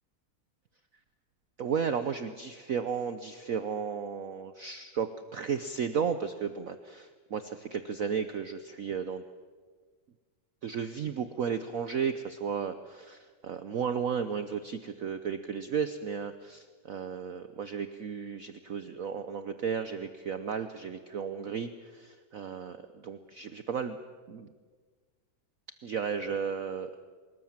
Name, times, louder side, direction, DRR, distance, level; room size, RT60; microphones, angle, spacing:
voice 1, 1.6-9.2 10.6-24.0 24.3-24.5 25.8-26.9, right 7 dB, 55° right, 11 dB, 1.0 m, -34 dB
24.0 x 21.0 x 7.3 m, 1.5 s
omnidirectional pair, 2.1 m